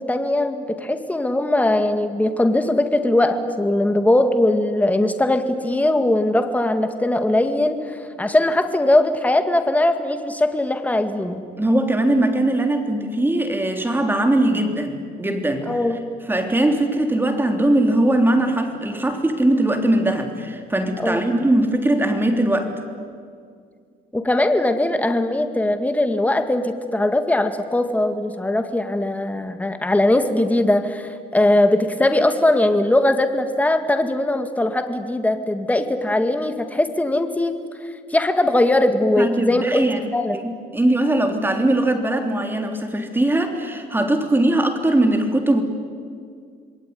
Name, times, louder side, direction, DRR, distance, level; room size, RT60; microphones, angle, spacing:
voice 1, 0.0-11.4 15.7-16.0 21.0-21.2 24.1-37.6 38.1-40.4, left 1 dB, 10° left, 7 dB, 2.1 m, -20 dB
voice 2, 11.6-15.8 16.3-22.7 39.2-40.1 40.3-45.6, right 1 dB, 10° right, 5 dB, 3.5 m, -20 dB
27.5 x 21.5 x 9.6 m, 2.2 s
cardioid pair, 110°, 17 cm